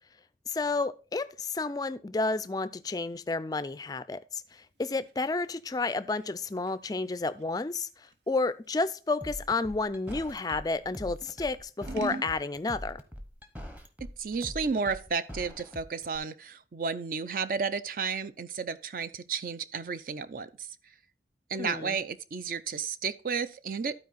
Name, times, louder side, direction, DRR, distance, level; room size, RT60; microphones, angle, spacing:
voice 1, 0.5-13.0 21.6-22.0, left 3 dB, 20° left, 0.3 m, -31 dB
Scissors, 4.5-10.6 11.2-12.3, right 3 dB, 80° right, 0.9 m, -44 dB
sound 1, 9.2-16.2, equal, 10° right, 0.8 m, -43 dB
voice 2, 14.2-20.7 21.5-23.9, right 5 dB, 50° right, 0.5 m, -32 dB
12.0 x 4.5 x 4.0 m
head